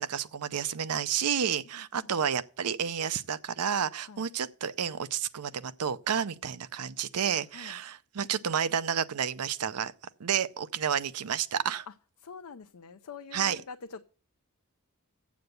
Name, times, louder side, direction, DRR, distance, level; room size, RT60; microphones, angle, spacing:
voice 1, 0.0-9.9 10.2-11.9 13.3-13.6, right 8 dB, 85° right, 0.6 m, -30 dB
voice 2, 1.7-2.1 4.1-4.3 7.5-7.8 11.9-12.0 12.2-14.0, left 5 dB, 75° left, 0.6 m, -45 dB
7.8 x 7.3 x 7.9 m
head